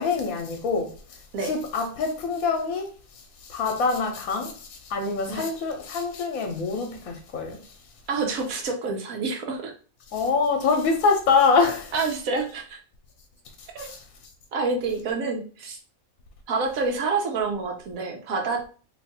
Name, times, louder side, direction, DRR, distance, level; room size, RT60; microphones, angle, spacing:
voice 1, 0.0-2.9 3.4-7.7 10.1-11.9 13.6-14.0, left 4 dB, 80° left, 1.1 m, -25 dB
voice 2, 8.1-9.7 11.9-12.8 13.7-13.9 14.5-15.8 16.5-18.7, right 4 dB, 80° right, 1.2 m, -28 dB
3.0 x 2.3 x 4.1 m
omnidirectional pair, 1.4 m